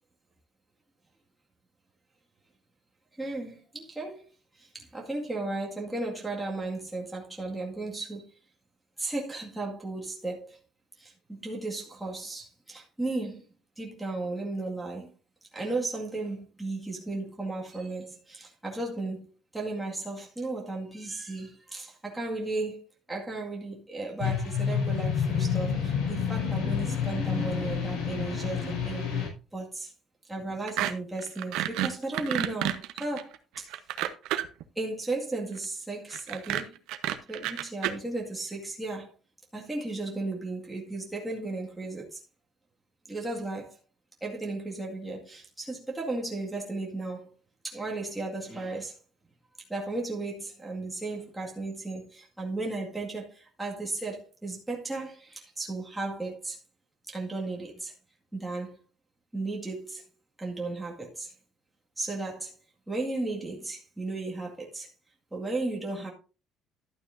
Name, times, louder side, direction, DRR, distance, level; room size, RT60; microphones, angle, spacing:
voice 1, 3.2-4.2 4.5-8.3 9.0-10.6 11.0-13.4 13.8-15.1 15.5-29.1 29.5-29.9 30.3-33.7 34.8-36.8 37.3-39.1 39.5-42.2 43.1-43.8 44.2-47.3 47.6-49.0 49.7-56.6 57.1-57.9 58.3-58.8 59.3-60.0 60.4-61.3 62.0-62.6 62.9-64.9 65.3-66.1, right 2 dB, 5° right, 2.0 m, -35 dB
sound 1, 24.2-29.3, left 7 dB, 85° left, 5.0 m, -29 dB
sound 2, 30.7-30.9 31.2-34.6 36.1-37.9, right 13 dB, 85° right, 0.9 m, -30 dB
12.0 x 8.8 x 2.6 m
cardioid pair, 165°, 0 cm